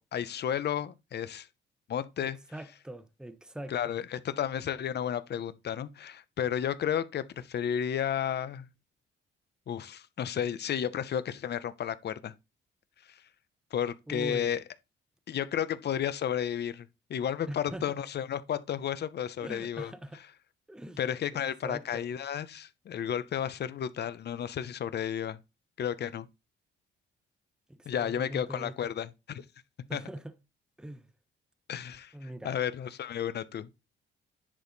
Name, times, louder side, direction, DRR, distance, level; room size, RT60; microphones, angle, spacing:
voice 1, 0.0-1.5 1.9-2.4 3.7-8.7 9.7-12.3 13.1-13.2 13.7-14.6 15.3-19.9 21.0-25.4 25.8-26.3 27.9-29.4 29.9-30.0 31.7-32.1 32.4-33.7, left 9 dB, 55° left, 0.9 m, -32 dB
voice 2, 2.2-3.9 14.1-14.5 17.5-18.0 19.4-20.2 20.7-21.0 21.6-22.1 27.7-28.9 29.9-30.3 30.8-31.1 32.1-32.6, right 1 dB, 5° right, 0.9 m, -42 dB
10.0 x 4.3 x 4.1 m
cardioid pair, 90°, 20 cm